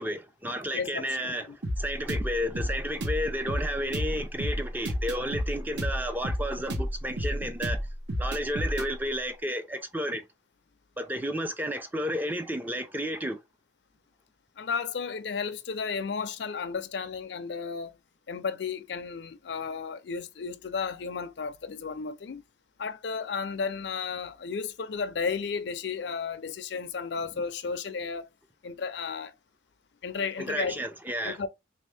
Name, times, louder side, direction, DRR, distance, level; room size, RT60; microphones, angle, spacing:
voice 1, 0.0-7.9 8.2-10.2 11.0-13.4 30.4-31.4, equal, 10° right, 0.4 m, -32 dB
voice 2, 0.7-1.1 1.5-1.6 14.6-17.9 18.3-22.4 22.8-28.3 28.6-29.3 30.0-30.8 31.2-31.5, left 5 dB, 70° left, 0.4 m, -33 dB
sound 1, 1.6-8.9, equal, 75° right, 1.0 m, -31 dB
3.3 x 2.7 x 3.3 m
head